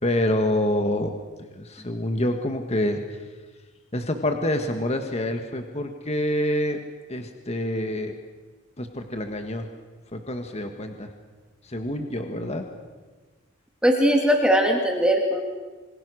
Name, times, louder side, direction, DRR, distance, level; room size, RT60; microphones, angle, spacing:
voice 1, 0.0-1.1 1.4-3.0 3.9-6.8 7.1-8.1 8.8-9.7 10.1-11.1 11.6-12.7 15.3-15.4, left 1 dB, 30° left, 5 dB, 1.7 m, -27 dB
voice 2, 13.8-15.4, equal, 5° right, 1 dB, 2.7 m, -20 dB
27.0 x 25.0 x 6.4 m, 1.3 s
head